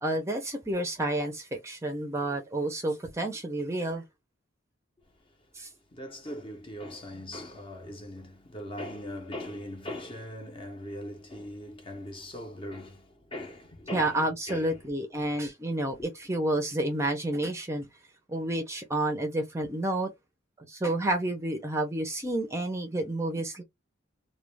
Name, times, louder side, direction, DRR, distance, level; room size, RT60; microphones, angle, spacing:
voice 1, 0.0-4.0 5.5-5.7 13.9-17.9 18.3-20.1 20.6-23.6, right 1 dB, 15° right, 0.5 m, -30 dB
voice 2, 5.9-14.8, left 1 dB, 25° left, 0.7 m, -40 dB
2.3 x 2.2 x 3.1 m
head